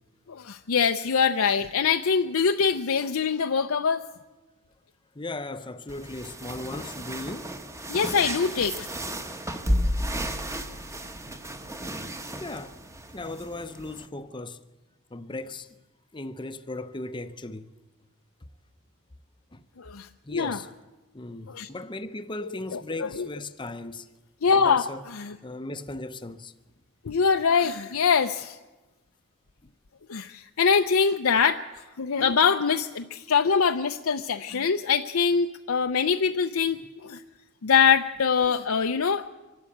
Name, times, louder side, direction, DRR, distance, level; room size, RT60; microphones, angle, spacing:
voice 1, 0.3-4.0 7.9-8.9 19.8-20.6 21.5-21.7 22.4-23.3 24.4-25.4 27.0-28.6 30.1-37.2 37.6-39.3, left 6 dB, 70° left, 0.6 m, -24 dB
voice 2, 5.1-7.5 12.4-12.8 13.1-14.6 15.1-15.7 16.1-17.7 19.5-19.6 20.2-20.7 21.1-24.1 24.6-25.0 25.4-26.5, left 2 dB, 20° left, 0.7 m, -37 dB
sound 1, 5.9-14.1, equal, 15° right, 1.1 m, -33 dB
24.5 x 12.5 x 8.6 m
head